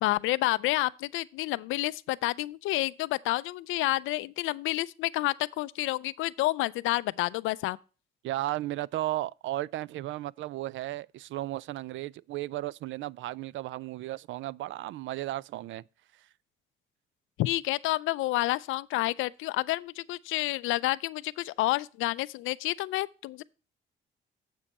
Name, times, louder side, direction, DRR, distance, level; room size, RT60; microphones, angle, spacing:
voice 1, 0.0-7.8 17.4-23.4, left 18 dB, 90° left, 0.4 m, -29 dB
voice 2, 8.2-15.8, right 15 dB, 75° right, 0.4 m, -34 dB
7.5 x 7.1 x 4.2 m
cardioid pair, 90°, 20 cm